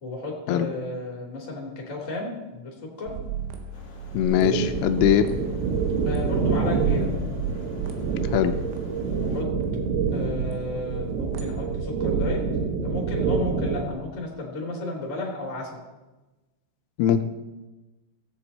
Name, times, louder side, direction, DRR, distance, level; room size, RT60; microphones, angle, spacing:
voice 1, 0.0-3.1 6.0-7.1 9.1-9.5 10.1-12.5 12.7-15.8, left 2 dB, 35° left, -1 dB, 1.3 m, -33 dB
sound 1, 3.1-6.5 6.8-11.8 12.1-12.3, right 8 dB, 80° right, 3.7 m, -33 dB
sound 2, 3.7-9.4, left 3 dB, 65° left, 1.4 m, -46 dB
voice 2, 4.1-5.3 8.3-8.6 17.0-17.2, left 10 dB, 85° left, 8 dB, 3.2 m, -21 dB
sound 3, 4.2-13.9, right 5 dB, 65° right, 3.0 m, -27 dB
18.0 x 8.0 x 4.2 m, 1.1 s
omnidirectional pair, 5.8 m